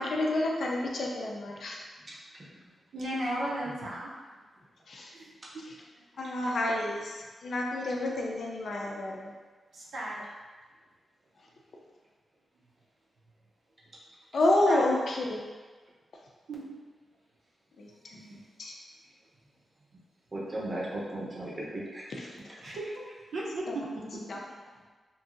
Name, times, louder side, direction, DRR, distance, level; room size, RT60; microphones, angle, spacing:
voice 1, 0.0-1.8 4.9-5.1 6.2-9.3 14.3-15.4 17.8-18.3 18.6-18.7 22.2-22.3 23.7-23.8 24.3-24.4, left 1 dB, 60° left, -1 dB, 0.4 m, -29 dB
voice 2, 2.9-4.1 5.1-5.3 5.5-5.6 9.7-10.2 14.7-14.9 16.5-16.8 22.6-24.1, right 1 dB, 90° right, -5 dB, 0.6 m, -35 dB
voice 3, 20.3-22.1 22.5-22.8, right 1 dB, 30° right, -5 dB, 0.6 m, -36 dB
2.9 x 2.6 x 2.5 m, 1.4 s
wide cardioid pair, 145°, 0 cm